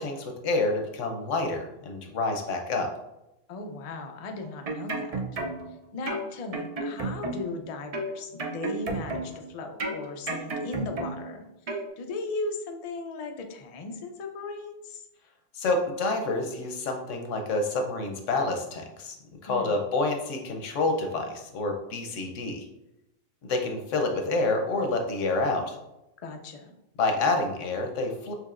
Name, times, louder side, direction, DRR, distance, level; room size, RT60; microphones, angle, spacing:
voice 1, 0.0-2.9 15.5-19.2 19.4-22.7 23.4-25.8 27.0-28.3, left 2 dB, 90° left, 4 dB, 1.1 m, -28 dB
voice 2, 3.5-5.2 5.9-11.4 12.0-15.1 19.5-19.8 26.2-26.7, left 3 dB, 50° left, 4 dB, 0.4 m, -37 dB
sound 1, 4.4-5.7 6.1-7.6 7.9-9.5 9.8-11.3 11.7-11.9, right 2 dB, 45° right, 0.5 m, -32 dB
6.3 x 2.9 x 2.5 m, 0.90 s
omnidirectional pair, 1.2 m